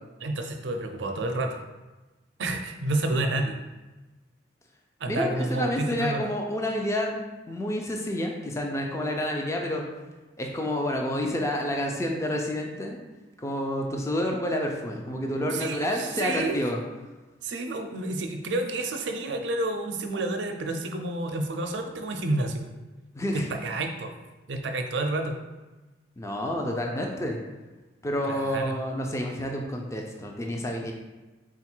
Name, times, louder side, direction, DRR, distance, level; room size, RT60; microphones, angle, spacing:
voice 1, 0.2-1.6 2.4-3.5 5.0-6.3 15.4-16.6 17.4-22.6 23.3-24.1 24.5-25.3 28.3-28.7, right 2 dB, 75° right, 5 dB, 0.5 m, -29 dB
voice 2, 5.1-7.2 7.5-9.9 10.4-13.0 13.4-16.8 23.1-23.5 26.2-27.4 28.0-30.9, left 1 dB, 15° left, 1 dB, 0.4 m, -29 dB
3.8 x 2.4 x 4.4 m, 1.1 s
head